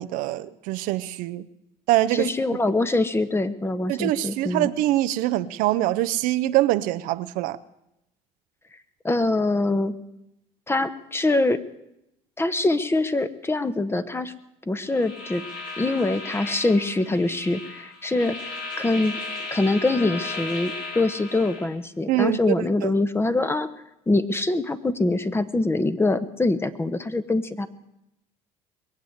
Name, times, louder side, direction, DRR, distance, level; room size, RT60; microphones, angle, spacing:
voice 1, 0.0-1.5 1.9-2.3 3.9-7.6 22.1-22.9, right 15 dB, 70° right, 12 dB, 0.7 m, -24 dB
voice 2, 2.1-4.7 9.0-9.9 10.7-11.6 12.4-14.3 14.7-15.4 15.8-19.2 19.5-23.7 24.1-27.7, left 2 dB, 15° left, 12 dB, 1.2 m, -24 dB
sound 1, 14.9-21.7, left 3 dB, 65° left, 5.2 m, -36 dB
21.5 x 8.1 x 8.0 m, 0.86 s
supercardioid pair, 80°, 15 cm